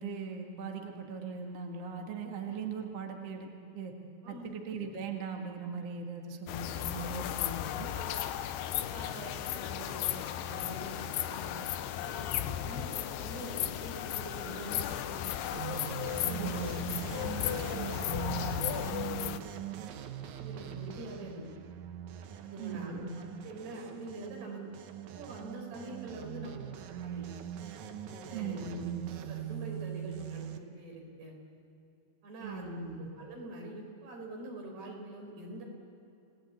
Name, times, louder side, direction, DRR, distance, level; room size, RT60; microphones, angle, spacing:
voice 1, 0.0-3.9 4.3-7.9 16.3-16.9 22.6-23.2 28.3-29.0 32.4-33.1, right 4 dB, 45° right, 2 dB, 2.2 m, -39 dB
sound 1, 6.5-19.4, left 11 dB, 75° left, 2.6 m, -35 dB
voice 2, 7.6-8.3 8.9-11.6 12.0-15.5 16.1-16.6 17.2-19.4 20.4-21.5 22.4-23.0 23.4-24.6 25.1-27.3 28.0-28.6 29.3-31.3 32.2-32.7 33.1-35.6, right 1 dB, 65° right, 0 dB, 6.5 m, -45 dB
sound 2, 15.5-30.6, right 10 dB, 85° right, 1.6 m, -41 dB
28.5 x 18.0 x 8.3 m, 2.7 s
omnidirectional pair, 5.1 m